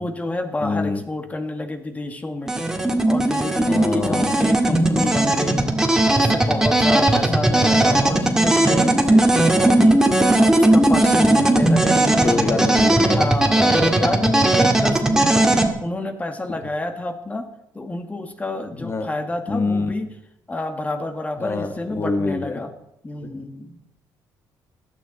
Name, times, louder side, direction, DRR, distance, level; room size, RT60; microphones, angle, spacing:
voice 1, 0.0-2.6 3.0-5.7 6.1-10.0 10.3-12.6 13.1-17.5 17.7-20.1 20.5-22.7 23.0-23.8, left 2 dB, 20° left, 6 dB, 1.8 m, -29 dB
voice 2, 0.6-1.0 2.8-2.9 3.6-4.4 7.6-8.0 9.5-9.9 11.2-11.4 12.2-13.9 14.6-14.7 16.5-16.6 18.7-19.1 19.5-19.9 21.4-22.6 23.2-23.4, left 3 dB, 35° left, 6 dB, 1.6 m, -26 dB
sound 1, 2.5-15.7, right 1 dB, 5° right, 2.1 m, -17 dB
16.5 x 12.0 x 4.1 m, 0.78 s
cardioid pair, 90°, 8 cm